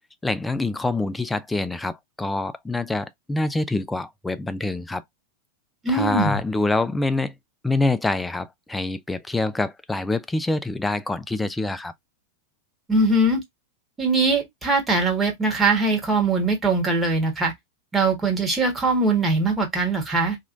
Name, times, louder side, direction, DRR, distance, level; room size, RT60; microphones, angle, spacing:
voice 1, 0.2-5.0 5.9-7.3 7.6-11.9, left 2 dB, 5° left, 0.4 m, -25 dB
voice 2, 5.8-6.4 12.9-13.4 14.0-17.5 17.9-20.4, right 3 dB, 15° right, 1.3 m, -21 dB
3.0 x 2.9 x 2.5 m
figure-of-eight pair, 90°, 0 cm